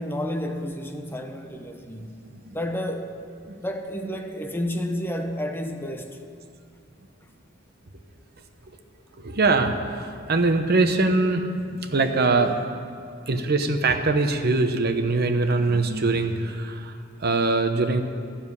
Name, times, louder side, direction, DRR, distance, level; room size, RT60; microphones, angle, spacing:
voice 1, 0.0-2.2 2.5-3.2 3.6-6.2, equal, 10° left, 0.8 m, -30 dB
voice 2, 2.2-2.6 3.5-3.6 9.2-12.6 13.3-18.0, right 3 dB, 55° right, 0.9 m, -23 dB
14.0 x 7.3 x 9.7 m
head